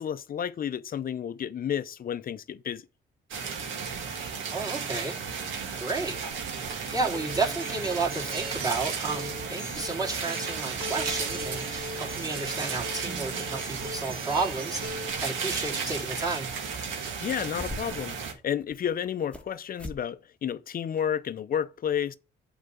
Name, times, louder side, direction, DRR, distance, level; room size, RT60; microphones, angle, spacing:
voice 1, 0.0-2.9 17.2-18.2 18.4-22.2, left 9 dB, 45° left, 0.6 m, -31 dB
sound 1, 3.3-18.3, right 5 dB, 75° right, 2.0 m, -34 dB
voice 2, 4.5-5.2 5.8-16.5, right 3 dB, 20° right, 3.2 m, -32 dB
Acoustic guitar, 7.1-15.1, equal, 45° right, 2.2 m, -40 dB
sound 2, 16.5-17.0 17.3-18.1 18.6-19.5 19.8-20.0 20.4-20.5 21.0-21.1, left 1 dB, 5° left, 1.3 m, -42 dB
8.2 x 4.1 x 6.9 m
cardioid pair, 90°, 20 cm